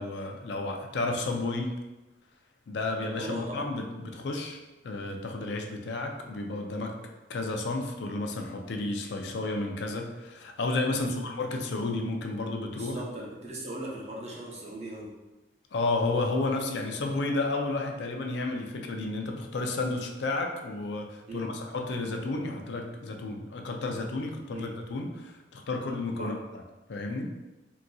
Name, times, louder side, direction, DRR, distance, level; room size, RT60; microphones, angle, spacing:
voice 1, 0.0-1.8 2.7-4.6 4.8-7.0 7.3-13.0 15.7-26.4 26.9-27.4, left 2 dB, 70° left, 3 dB, 0.4 m, -32 dB
voice 2, 3.2-3.6 10.9-11.1 12.8-15.2 21.3-21.6 24.5-24.8 26.2-26.4, right 1 dB, 35° right, -3 dB, 0.6 m, -39 dB
3.8 x 2.6 x 2.3 m, 1.1 s
head